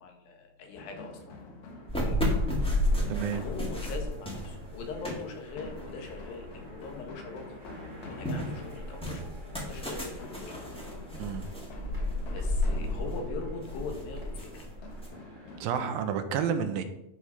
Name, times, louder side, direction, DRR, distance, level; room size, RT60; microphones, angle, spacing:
voice 1, 0.0-1.4 2.0-2.3 2.6-7.6 8.0-11.0 12.3-14.7, left 4 dB, 80° left, 3 dB, 3.2 m, -42 dB
sound 1, 0.7-15.9, left 2 dB, 60° left, 2.3 m, -47 dB
sound 2, 1.3-15.6, equal, 30° right, 0.9 m, -53 dB
sound 3, 1.9-7.1 7.5-15.1, left 1 dB, 5° left, 1.0 m, -32 dB
voice 2, 3.1-3.4 11.1-11.5 15.6-16.8, right 7 dB, 85° right, 8 dB, 2.5 m, -30 dB
10.5 x 4.9 x 5.7 m, 0.85 s
omnidirectional pair, 4.2 m